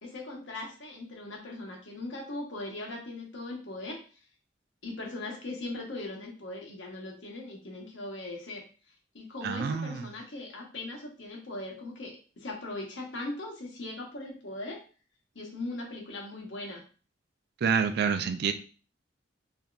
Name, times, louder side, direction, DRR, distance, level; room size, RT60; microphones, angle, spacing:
voice 1, 0.0-4.0 4.8-8.6 9.1-14.8 15.3-16.8, left 2 dB, 90° left, 0 dB, 1.0 m, -39 dB
voice 2, 9.4-10.1 17.6-18.5, right 6 dB, 60° right, 9 dB, 0.4 m, -28 dB
3.5 x 2.7 x 2.3 m, 0.37 s
head